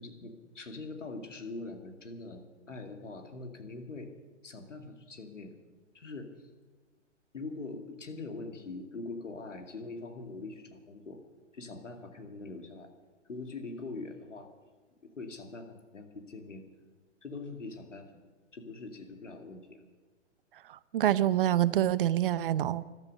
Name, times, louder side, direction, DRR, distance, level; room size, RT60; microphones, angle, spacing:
voice 1, 0.0-4.1 4.4-5.5 5.9-6.5 7.3-11.2 11.5-12.9 13.3-14.5 15.0-16.7 17.2-18.1 18.5-19.8, left 3 dB, 80° left, 2.4 m, -43 dB
voice 2, 20.7-22.8, right 12 dB, 50° right, 0.7 m, -26 dB
15.0 x 12.5 x 6.5 m
figure-of-eight pair, 120°, 37 cm